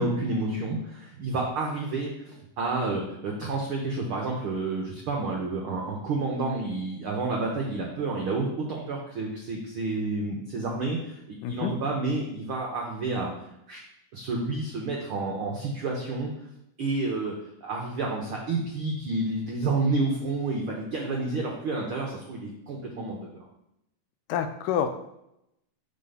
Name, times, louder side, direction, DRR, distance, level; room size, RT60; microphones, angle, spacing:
voice 1, 0.0-13.3 13.7-13.8 14.1-16.3 16.8-17.3 17.6-23.4, right 3 dB, 85° right, -1 dB, 1.2 m, -30 dB
voice 2, 11.4-11.7 24.3-24.9, left 9 dB, 80° left, 9 dB, 2.1 m, -27 dB
7.3 x 4.3 x 5.6 m, 0.83 s
omnidirectional pair, 3.9 m